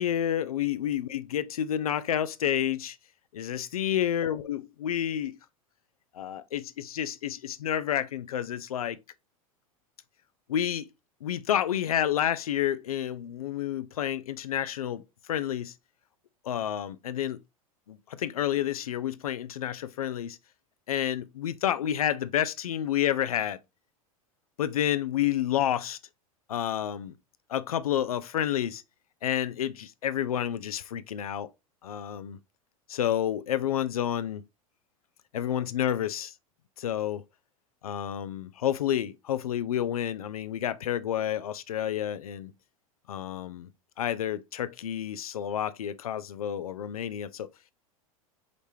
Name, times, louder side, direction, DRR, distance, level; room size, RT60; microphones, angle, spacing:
voice 1, 0.0-3.0 3.3-5.4 6.1-9.0 10.5-10.9 11.2-15.7 16.4-17.4 17.9-20.4 20.9-23.6 24.6-26.0 26.5-27.2 27.5-28.8 29.2-31.5 31.8-32.4 32.9-34.4 35.3-36.3 36.8-37.2 37.8-42.5 43.1-43.7 44.0-47.5, left 10 dB, 80° left, 0.5 m, -29 dB
5.1 x 3.4 x 2.7 m
hypercardioid pair, 85°, 18 cm